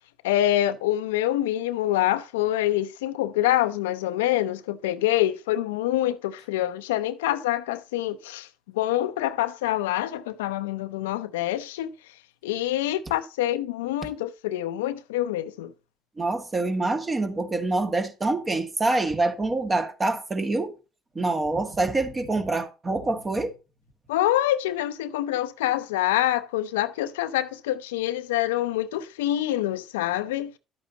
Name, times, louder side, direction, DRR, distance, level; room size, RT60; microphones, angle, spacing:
voice 1, 0.2-8.5 8.7-11.9 12.4-15.7 24.1-30.5, left 13 dB, 90° left, 0.6 m, -26 dB
voice 2, 16.2-20.7 21.2-23.6, right 2 dB, 30° right, 1.9 m, -26 dB
11.0 x 8.5 x 2.9 m
hypercardioid pair, 70°, 0 cm